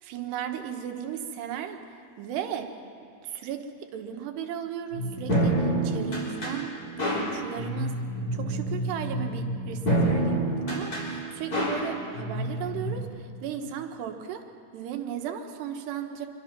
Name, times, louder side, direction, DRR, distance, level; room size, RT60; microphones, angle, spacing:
voice 1, 0.0-1.8 2.2-2.7 3.2-6.7 7.1-8.0 8.3-14.5 14.7-16.3, right 9 dB, 80° right, 5 dB, 3.4 m, -36 dB
sound 1, 4.9-13.0, right 1 dB, 20° left, 4.5 m, -28 dB
25.5 x 23.0 x 6.0 m, 2.3 s
omnidirectional pair, 4.7 m